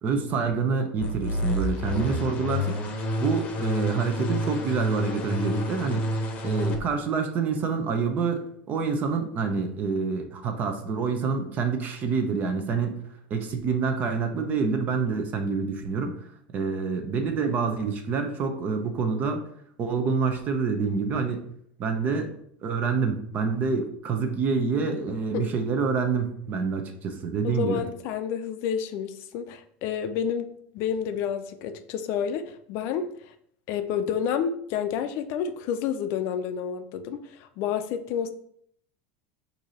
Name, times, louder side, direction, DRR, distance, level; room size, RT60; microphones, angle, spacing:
voice 1, 0.0-2.8 3.2-6.0 6.4-13.0 13.3-16.3 16.5-19.4 19.8-21.4 21.8-22.3 22.6-27.8, right 5 dB, 35° right, 6 dB, 0.7 m, -27 dB
sound 1, 1.0-6.8, equal, 30° left, 0.8 m, -29 dB
voice 2, 27.4-30.5 30.7-33.3 33.7-38.3, left 8 dB, 55° left, 9 dB, 0.4 m, -29 dB
4.7 x 2.7 x 4.1 m, 0.67 s
supercardioid pair, 130°, 5 cm